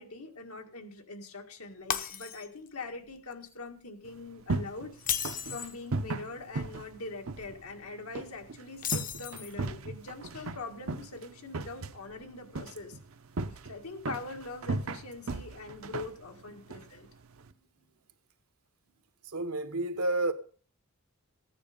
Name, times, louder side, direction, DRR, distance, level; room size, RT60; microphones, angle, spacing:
voice 1, 0.0-4.9 5.5-13.0 13.7-17.1, left 3 dB, 80° left, 1.8 m, -43 dB
Shatter, 1.9-2.7 3.1-3.3 4.9-5.8 8.8-9.7, left 8 dB, 40° left, 0.8 m, -34 dB
sound 1, 4.0-17.5, right 3 dB, 65° right, 0.8 m, -38 dB
voice 2, 16.3-16.8 19.2-20.3, right 2 dB, 80° right, 1.3 m, -32 dB
14.5 x 9.6 x 5.1 m
head